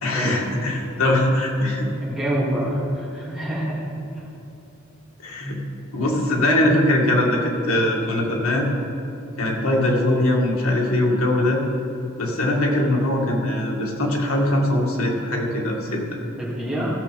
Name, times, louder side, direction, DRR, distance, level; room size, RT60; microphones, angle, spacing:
voice 1, 0.0-1.9 5.2-5.6 5.9-8.7 9.4-11.6 12.2-16.2, left 1 dB, 90° left, -1 dB, 2.0 m, -21 dB
voice 2, 2.0-3.9 4.1-4.2 16.4-16.9, right 1 dB, 5° right, -8 dB, 2.8 m, -26 dB
15.0 x 6.7 x 5.2 m, 2.8 s
head